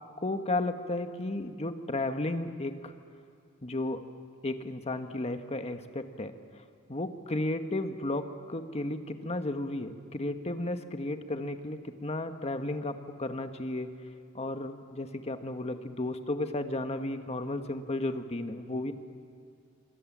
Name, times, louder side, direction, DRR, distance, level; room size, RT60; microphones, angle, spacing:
voice 1, 0.2-2.9 3.6-4.0 4.4-6.3 6.9-13.9 14.3-18.9, left 2 dB, 30° left, 7 dB, 1.4 m, -33 dB
25.5 x 25.0 x 7.4 m, 2.4 s
head